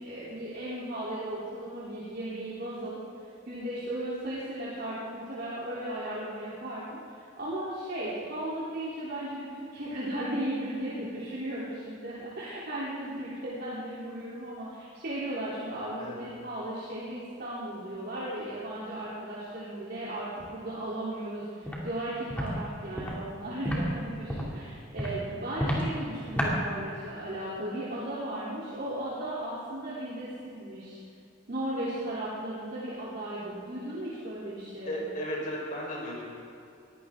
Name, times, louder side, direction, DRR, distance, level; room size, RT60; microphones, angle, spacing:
voice 1, 0.0-3.0 3.4-7.0 7.4-31.0 31.5-35.0, right 1 dB, 55° right, -9 dB, 3.4 m, -36 dB
Walk footsteps, 21.7-21.8 22.3-22.5 22.9-23.1 23.6-23.8 24.3-24.5 25.0-25.1 25.6-25.8 26.4-26.5, equal, 10° left, 2.7 m, -30 dB
voice 2, 34.9-36.2, equal, 45° left, -3 dB, 4.7 m, -34 dB
21.5 x 15.5 x 3.8 m, 2.6 s
head